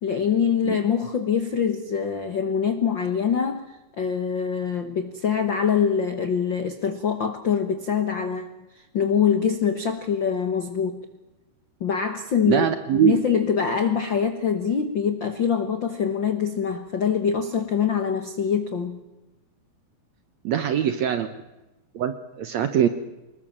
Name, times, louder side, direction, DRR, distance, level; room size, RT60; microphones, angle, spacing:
voice 1, 0.0-3.6 4.0-11.1 11.8-12.7 12.9-19.0, left 7 dB, 70° left, 8 dB, 1.1 m, -24 dB
voice 2, 12.4-13.2 20.4-21.3 21.9-22.9, right 9 dB, 70° right, 10 dB, 1.7 m, -22 dB
25.5 x 20.5 x 7.4 m, 1.0 s
omnidirectional pair, 4.4 m